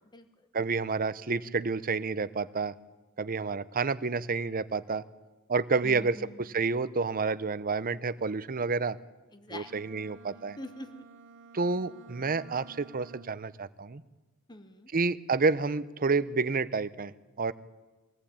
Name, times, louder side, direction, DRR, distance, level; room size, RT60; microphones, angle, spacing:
voice 1, 0.5-2.7 3.2-5.0 5.5-9.0 9.5-10.6 11.5-14.0 14.9-17.5, right 4 dB, 40° right, 15 dB, 0.7 m, -29 dB
voice 2, 5.8-6.4 9.3-9.7 10.6-11.0 14.5-14.9, left 1 dB, 20° left, 8 dB, 1.2 m, -44 dB
Bowed string instrument, 9.5-13.6, right 4 dB, 60° right, 1.1 m, -53 dB
23.0 x 17.5 x 8.7 m, 1.2 s
head